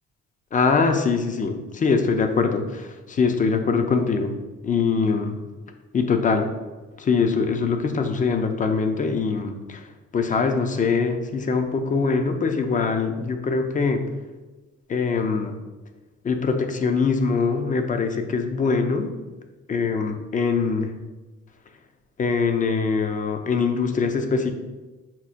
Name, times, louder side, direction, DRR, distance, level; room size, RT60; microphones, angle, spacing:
voice 1, 0.5-4.4 4.6-5.4 5.9-6.5 7.0-9.9 10.1-14.0 14.9-15.6 16.2-19.1 19.7-20.9 22.2-24.5, left 5 dB, 25° left, 6 dB, 0.4 m, -23 dB
5.7 x 2.1 x 2.5 m, 1.2 s
cardioid pair, 90°, 30 cm